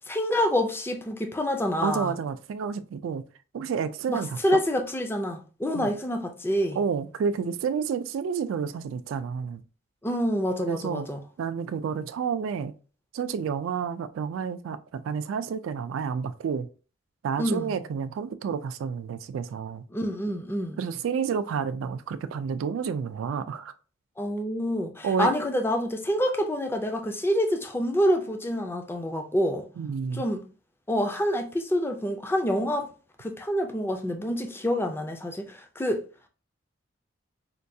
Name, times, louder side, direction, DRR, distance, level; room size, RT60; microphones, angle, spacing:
voice 1, 0.1-2.1 4.1-6.8 10.0-11.2 17.4-17.7 19.9-20.8 24.2-29.7 30.1-30.4 30.9-32.9 33.2-36.1, equal, 10° left, 0.4 m, -27 dB
voice 2, 1.8-3.2 3.5-4.6 5.7-5.9 6.7-9.6 10.6-11.1 11.4-12.7 13.1-16.7 17.2-19.8 20.8-23.7 25.0-25.3 29.8-30.2, right 6 dB, 75° right, 0.3 m, -30 dB
4.4 x 2.3 x 2.6 m
head